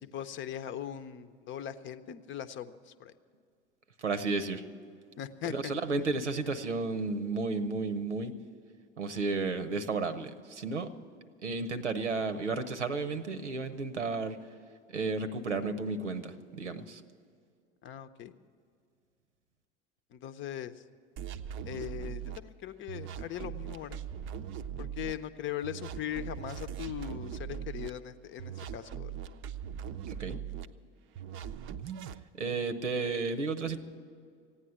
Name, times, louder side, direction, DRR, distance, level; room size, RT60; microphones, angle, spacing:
voice 1, 0.0-3.1 5.2-5.7 17.8-18.3 20.1-20.7 21.6-24.0 24.8-29.1, left 10 dB, 35° left, 12 dB, 0.8 m, -40 dB
voice 2, 4.0-4.6 5.4-8.4 9.0-10.9 11.4-14.4 14.9-17.0 30.2-30.4 32.4-33.8, right 3 dB, 85° right, 10 dB, 0.9 m, -32 dB
sound 1, 21.2-22.4 22.9-25.1 25.6-27.9 28.4-30.7 31.1-32.2, right 9 dB, 35° right, 0.6 m, -40 dB
15.5 x 9.8 x 8.7 m, 2.3 s
figure-of-eight pair, 75°, 35 cm